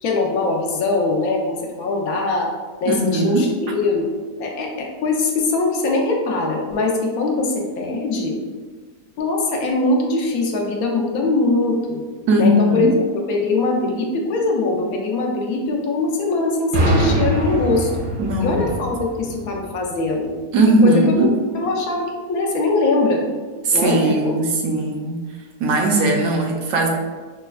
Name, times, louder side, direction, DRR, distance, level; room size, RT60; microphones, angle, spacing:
voice 1, 0.0-2.5 2.8-4.1 4.4-8.4 9.2-12.0 12.4-12.9 13.3-17.9 18.4-20.3 20.8-21.3 21.5-23.2 23.7-24.4, left 3 dB, 70° left, 1 dB, 1.0 m, -22 dB
voice 2, 2.8-3.5 12.3-12.9 18.2-18.7 20.5-21.3 23.6-25.2 25.6-26.9, right 1 dB, 70° right, 1 dB, 0.9 m, -18 dB
sound 1, 16.7-20.4, equal, 45° right, 0.8 m, -23 dB
5.7 x 2.1 x 2.3 m, 1.4 s
omnidirectional pair, 1.7 m